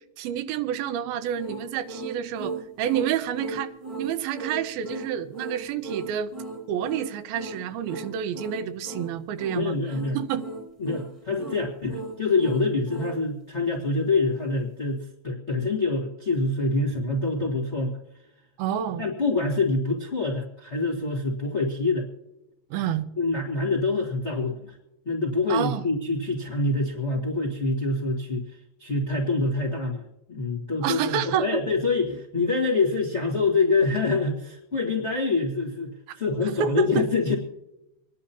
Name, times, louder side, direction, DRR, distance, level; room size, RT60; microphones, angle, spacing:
voice 1, 0.2-6.3 6.7-9.8 10.1-10.5 18.6-19.1 22.7-23.0 25.5-25.8 30.8-31.6 36.6-37.0, right 9 dB, 90° right, 11 dB, 2.6 m, -29 dB
sound 1, 1.3-13.2, right 3 dB, 15° right, 1.1 m, -37 dB
voice 2, 9.5-10.2 10.8-17.9 19.0-22.1 23.2-24.8 25.0-37.4, left 3 dB, 55° left, -1 dB, 0.7 m, -26 dB
26.0 x 10.5 x 2.8 m, 0.90 s
omnidirectional pair, 4.2 m